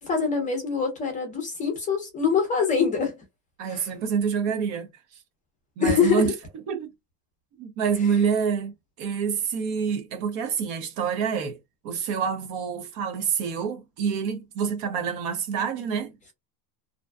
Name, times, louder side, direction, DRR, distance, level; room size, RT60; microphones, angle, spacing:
voice 1, 0.0-3.2 3.7-3.9 5.8-6.3, left 6 dB, 15° left, 0.6 m, -24 dB
voice 2, 3.6-4.9 5.8-6.3 6.7-6.9 7.6-8.7 9.0-11.6 11.8-16.3, right 6 dB, 40° right, 0.5 m, -27 dB
2.6 x 2.1 x 2.2 m
cardioid pair, 165°, 44 cm